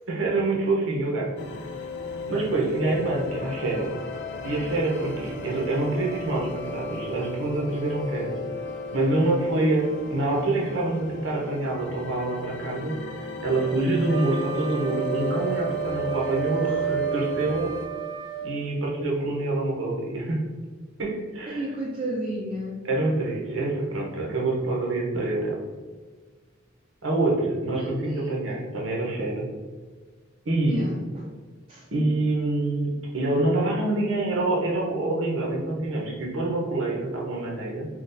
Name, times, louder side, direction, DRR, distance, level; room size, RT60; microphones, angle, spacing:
voice 1, 0.1-1.3 2.3-3.9 4.4-8.3 8.9-13.0 13.4-17.7 18.4-20.4 21.0-21.6 22.8-25.6 27.0-29.5 30.5-30.8 31.9-37.9, right 2 dB, 80° right, -2 dB, 0.8 m, -26 dB
sound 1, 1.4-17.9, left 3 dB, 60° left, 0.4 m, -36 dB
Wind instrument woodwind instrument, 14.1-18.5, right 10 dB, 35° left, 1.4 m, -31 dB
voice 2, 16.6-16.9 21.5-22.9 27.6-28.3 30.7-31.3 31.7-31.8, right 1 dB, 30° right, -5 dB, 0.4 m, -33 dB
3.8 x 2.4 x 2.6 m, 1.4 s
head